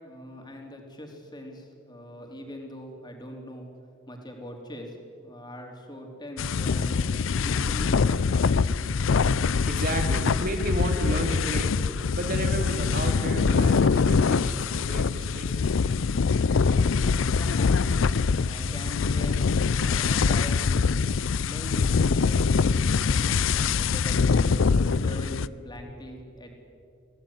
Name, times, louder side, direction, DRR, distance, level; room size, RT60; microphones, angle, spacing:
voice 1, 0.0-3.7 4.1-7.0 7.4-8.2 17.3-17.9 18.2-19.4 19.7-20.6 21.5-24.5 24.8-26.6, left 1 dB, 20° left, 2 dB, 3.8 m, -42 dB
sound 1, 6.4-25.5, left 5 dB, 80° left, 0.5 m, -24 dB
voice 2, 9.6-11.7 12.2-15.8, right 1 dB, 50° right, 4 dB, 3.1 m, -33 dB
24.0 x 17.0 x 9.7 m, 2.4 s
head